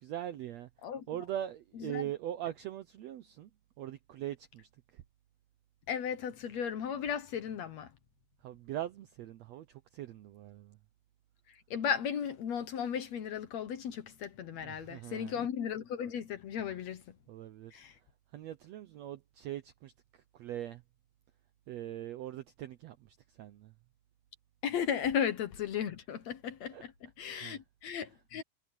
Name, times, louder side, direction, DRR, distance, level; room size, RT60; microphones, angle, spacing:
voice 1, 0.0-0.7 1.1-3.5 3.8-4.7 8.4-9.6 9.9-10.8 14.6-15.3 17.3-17.7 18.3-19.9 20.4-20.8 21.7-22.9 23.4-23.7 26.7-26.8 27.3-27.6, right 12 dB, 75° right, 1.6 m, -41 dB
voice 2, 1.7-2.1 5.9-7.9 11.7-17.0 17.7-17.9 24.6-28.4, left 8 dB, 65° left, 2.0 m, -35 dB
omnidirectional pair, 4.0 m